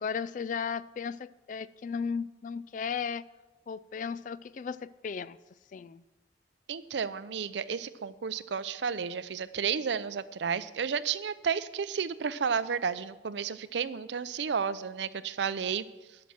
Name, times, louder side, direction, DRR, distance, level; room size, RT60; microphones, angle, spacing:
voice 1, 0.0-3.3 3.7-5.4 5.7-6.0, left 6 dB, 45° left, 17 dB, 0.3 m, -35 dB
voice 2, 6.7-15.8, right 6 dB, 75° right, 15 dB, 0.5 m, -32 dB
11.0 x 5.9 x 7.4 m, 1.1 s
head